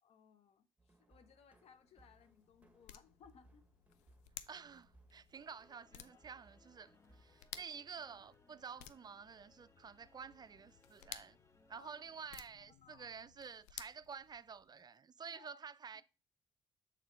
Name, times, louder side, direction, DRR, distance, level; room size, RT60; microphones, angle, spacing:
voice 1, 0.0-3.7 6.1-6.2 11.7-11.9 12.8-13.1 15.3-15.6 15.9-16.0, left 7 dB, 60° left, 0.9 m, -64 dB
sound 1, 0.8-7.7, right 2 dB, 10° right, 1.3 m, -69 dB
sound 2, 1.6-14.8, left 12 dB, 75° left, 0.4 m, -57 dB
voice 2, 4.5-11.4 11.7-16.0, right 6 dB, 35° right, 0.4 m, -50 dB
sound 3, 5.3-12.2, left 2 dB, 25° left, 0.9 m, -70 dB
6.5 x 3.7 x 4.5 m
hypercardioid pair, 45°, 12 cm